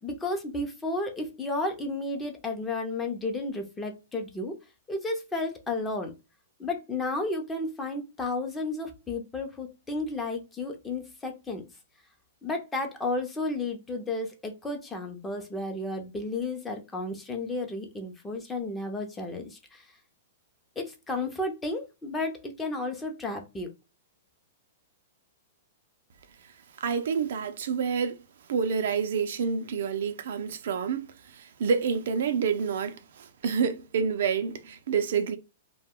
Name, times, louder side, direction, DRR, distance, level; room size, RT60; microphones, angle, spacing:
voice 1, 0.0-4.5 4.9-6.1 6.6-11.6 12.4-19.8 20.8-23.7, left 2 dB, 10° left, 0.6 m, -32 dB
voice 2, 26.8-28.2 28.5-35.4, right 6 dB, 70° right, 0.4 m, -28 dB
2.2 x 2.2 x 3.5 m
hypercardioid pair, 140°, 0 cm